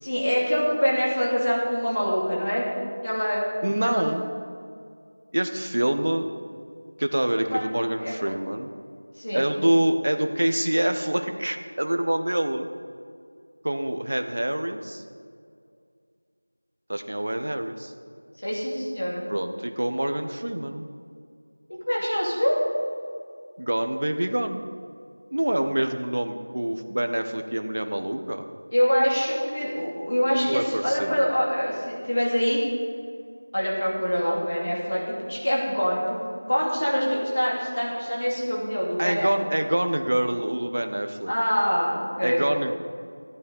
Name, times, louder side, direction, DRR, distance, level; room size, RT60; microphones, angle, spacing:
voice 1, 0.0-2.7 3.0-3.4 3.8-4.0 7.5-7.6 8.0-8.1 9.1-9.5 18.4-19.3 21.7-22.6 28.7-32.6 33.5-39.3 41.3-42.4, equal, 40° left, -4 dB, 2.6 m, -25 dB
voice 2, 3.6-4.3 5.3-6.3 7.0-8.7 9.3-12.7 13.6-15.0 16.9-17.9 19.3-20.9 23.6-24.7 25.3-28.5 30.5-31.2 39.0-41.3 42.2-42.7, right 1 dB, 35° right, 6 dB, 0.6 m, -26 dB
14.5 x 8.6 x 5.4 m, 2.3 s
figure-of-eight pair, 180°, 0 cm